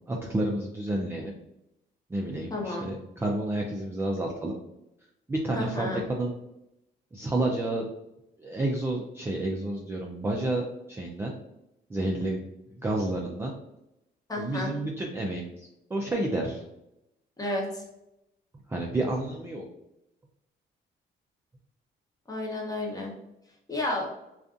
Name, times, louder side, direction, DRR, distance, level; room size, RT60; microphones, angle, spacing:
voice 1, 0.1-1.3 2.1-4.5 5.3-6.3 7.1-7.8 8.4-11.3 11.9-12.4 12.8-13.5 14.4-15.4 15.9-16.6 18.7-19.6, right 1 dB, 10° right, -1 dB, 0.3 m, -30 dB
voice 2, 2.5-2.9 5.5-6.0 14.3-14.7 17.4-17.8 22.3-23.1 23.7-24.1, left 1 dB, 20° left, -2 dB, 0.8 m, -31 dB
2.5 x 2.4 x 2.4 m, 0.87 s
cardioid pair, 90°, 20 cm